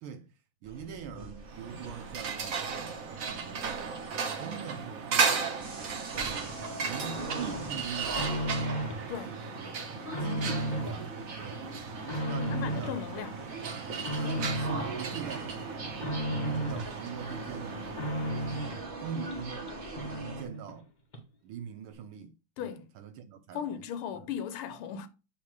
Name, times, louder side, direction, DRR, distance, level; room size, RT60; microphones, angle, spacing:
voice 1, 0.0-0.3 0.6-4.0 4.4-5.5 6.2-8.8 9.2-9.8 10.2-11.7 12.2-13.0 14.2-15.9 16.4-18.3 19.0-19.8 20.1-20.9 21.4-23.9 24.1-24.2, right 7 dB, 80° right, 1.5 m, -43 dB
sound 1, 0.6-20.4, right 2 dB, 30° right, 1.2 m, -43 dB
sound 2, 1.4-18.9, right 5 dB, 50° right, 1.1 m, -36 dB
sound 3, 7.5-9.1 9.4-11.0 11.4-13.0 13.4-15.0 15.3-16.9 17.3-18.9 19.3-19.4 19.7-19.8 19.9-20.8 21.1-21.2, equal, 35° left, 0.8 m, -35 dB
voice 2, 12.4-13.4 22.6-22.8 23.5-25.1, left 8 dB, 90° left, 1.6 m, -37 dB
7.5 x 3.5 x 4.7 m
omnidirectional pair, 2.3 m